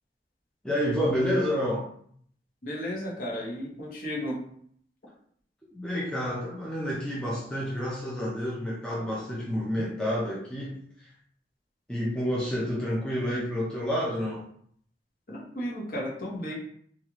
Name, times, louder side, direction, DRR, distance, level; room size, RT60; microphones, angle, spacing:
voice 1, 0.6-1.9 5.7-10.8 11.9-14.4, equal, 5° left, -6 dB, 0.5 m, -29 dB
voice 2, 2.6-4.4 15.3-16.5, equal, 50° left, -4 dB, 0.9 m, -34 dB
3.1 x 2.4 x 2.9 m, 0.63 s
head